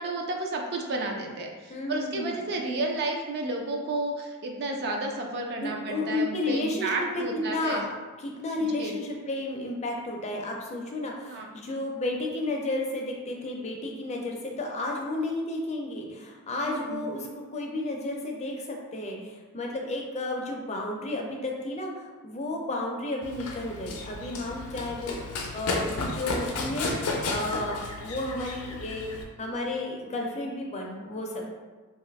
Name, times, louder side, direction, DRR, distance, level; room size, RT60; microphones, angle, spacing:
voice 1, 0.0-7.8 8.8-9.0 11.3-11.5 16.6-17.0, right 2 dB, 50° right, 2 dB, 0.4 m, -31 dB
voice 2, 1.7-2.4 5.6-7.9 8.2-31.4, left 2 dB, 30° left, 0 dB, 0.4 m, -32 dB
Run, 23.2-29.2, left 2 dB, 85° left, 0.5 m, -33 dB
2.6 x 2.3 x 3.4 m, 1.3 s
head